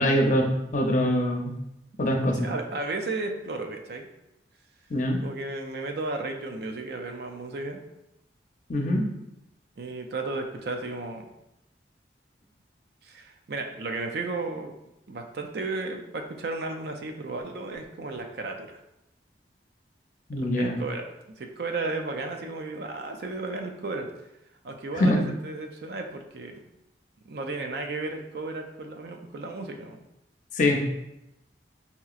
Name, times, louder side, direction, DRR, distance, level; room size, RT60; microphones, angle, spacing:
voice 1, 0.0-1.6 2.0-2.5 4.9-5.2 8.7-9.0 20.3-20.8 25.0-25.2 30.6-30.8, left 1 dB, 45° left, 2 dB, 0.5 m, -23 dB
voice 2, 2.4-4.1 5.2-7.8 9.8-11.3 13.0-14.8 15.1-18.8 20.4-21.1 21.4-24.1 24.6-26.6 27.3-30.0, right 3 dB, 55° right, 4 dB, 0.4 m, -34 dB
5.5 x 2.9 x 2.4 m, 0.87 s
head